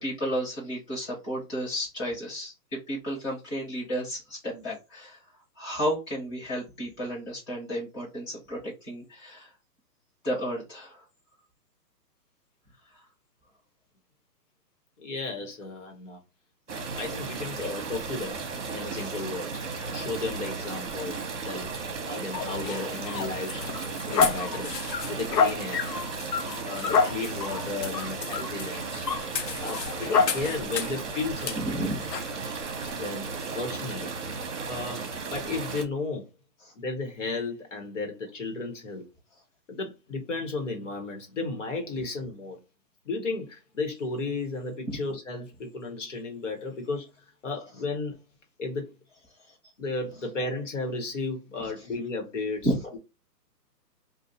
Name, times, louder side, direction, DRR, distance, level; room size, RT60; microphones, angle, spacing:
voice 1, 0.0-2.5 2.9-5.2 5.6-9.5 10.2-11.0 18.9-19.1 26.4-26.7 29.2-29.7 31.5-32.0 32.4-33.0 36.6-36.7 52.6-52.7, equal, 15° left, 1.5 m, -33 dB
voice 2, 15.0-16.2 16.7-18.4 18.7-19.6 19.9-21.2 21.4-21.7 22.0-23.7 24.1-24.7 25.1-25.8 26.6-29.1 29.6-31.9 32.9-34.1 34.7-36.3 36.7-39.1 39.7-42.6 43.0-47.1 47.4-48.2 48.6-48.9 49.8-52.7 52.9-53.0, left 3 dB, 45° left, 1.3 m, -34 dB
sound 1, 16.7-35.8, right 4 dB, 45° right, 1.0 m, -35 dB
sound 2, 22.3-31.0 31.4-31.6 32.1-32.3, left 6 dB, 80° left, 0.7 m, -29 dB
2.7 x 2.4 x 4.1 m
hypercardioid pair, 165°, 49 cm